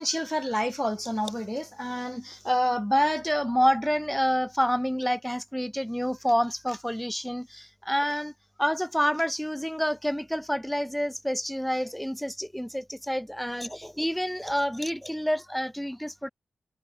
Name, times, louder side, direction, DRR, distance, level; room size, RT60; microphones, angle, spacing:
voice 1, 0.0-8.3 8.6-16.3, equal, 5° left, 4.4 m, -28 dB
cardioid pair, 55°, 2 cm